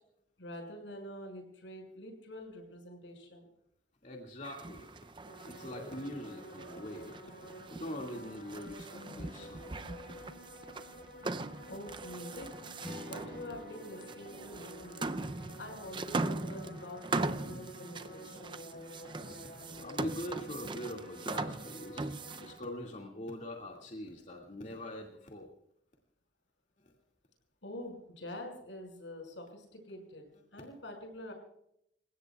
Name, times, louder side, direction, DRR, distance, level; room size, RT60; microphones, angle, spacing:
voice 1, 0.4-3.5 11.7-12.5 12.9-15.1 15.6-18.6 27.6-31.3, left 1 dB, 90° left, 3 dB, 6.0 m, -46 dB
voice 2, 4.0-9.8 18.9-19.1 19.4-25.5 26.8-26.9, left 1 dB, 40° left, 0 dB, 2.2 m, -43 dB
sound 1, 4.4-22.6, right 3 dB, 25° right, 0.5 m, -41 dB
sound 2, 5.2-22.5, left 1 dB, 60° left, 5.9 m, -51 dB
Strum, 12.8-17.4, equal, 5° left, 6.5 m, -51 dB
28.0 x 16.5 x 2.4 m, 0.75 s
head